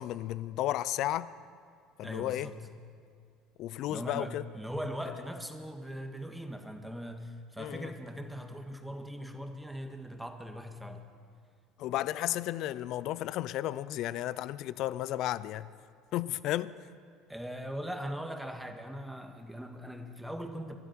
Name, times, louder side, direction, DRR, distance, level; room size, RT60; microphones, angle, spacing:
voice 1, 0.0-1.3 2.0-2.5 3.6-4.4 7.6-7.9 11.8-15.7 16.1-16.8, left 14 dB, 60° left, 0.5 m, -33 dB
voice 2, 2.0-2.7 3.9-11.1 17.3-20.8, equal, 5° right, 1.7 m, -40 dB
24.5 x 12.5 x 4.5 m
hypercardioid pair, 70°, 0 cm